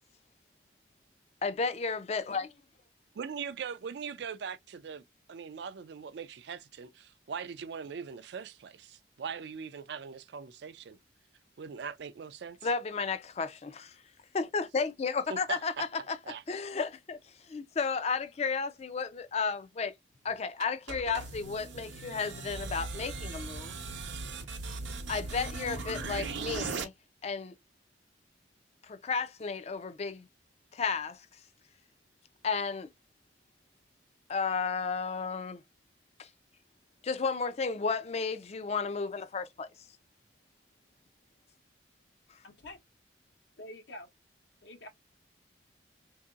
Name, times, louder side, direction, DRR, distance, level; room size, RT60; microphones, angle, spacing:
voice 1, 1.4-2.5 12.6-14.0 14.3-16.2 16.5-17.2 17.5-19.9 20.2-23.7 25.1-26.9 27.2-27.5 28.8-30.3 30.7-31.3 32.4-32.9 34.3-35.6 36.2-36.3 37.0-39.7, left 5 dB, 35° left, 0.4 m, -33 dB
voice 2, 3.1-5.0 5.3-11.0 11.6-12.6 15.3-15.8 16.3-16.4, right 6 dB, 60° right, 0.4 m, -41 dB
sound 1, 20.6-26.8, right 3 dB, 80° right, 0.7 m, -38 dB
voice 3, 42.4-42.8 43.6-44.1 44.6-44.9, left 1 dB, 70° left, 0.7 m, -46 dB
3.6 x 2.7 x 2.3 m
head